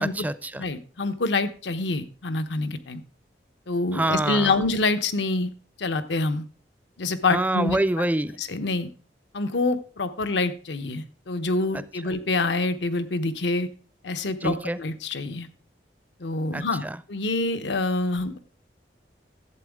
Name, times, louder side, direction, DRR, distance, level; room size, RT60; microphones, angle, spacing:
voice 1, 0.0-0.6 3.9-4.6 7.3-8.4 11.7-11.8 14.4-14.8 16.5-17.0, right 1 dB, 10° right, 15 dB, 0.4 m, -26 dB
voice 2, 0.6-3.0 3.7-5.5 5.8-6.4 7.0-7.8 8.4-8.9 9.3-13.7 14.0-15.5 16.2-18.4, left 3 dB, 85° left, 11 dB, 0.8 m, -26 dB
12.0 x 7.9 x 3.5 m, 0.39 s
head